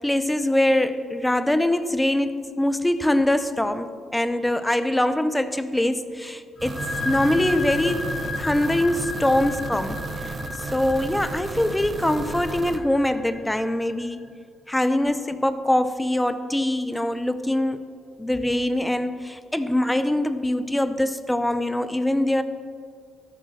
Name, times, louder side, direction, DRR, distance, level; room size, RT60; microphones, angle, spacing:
voice 1, 0.0-10.3 10.7-14.2 14.7-17.8 18.2-22.4, left 1 dB, 10° left, 11 dB, 0.7 m, -23 dB
sound 1, 6.5-14.0, left 2 dB, 30° left, 3.8 m, -33 dB
sound 2, 6.6-12.8, right 3 dB, 40° right, 1.1 m, -34 dB
13.5 x 8.6 x 6.2 m, 2.1 s
cardioid pair, 90°, 0 cm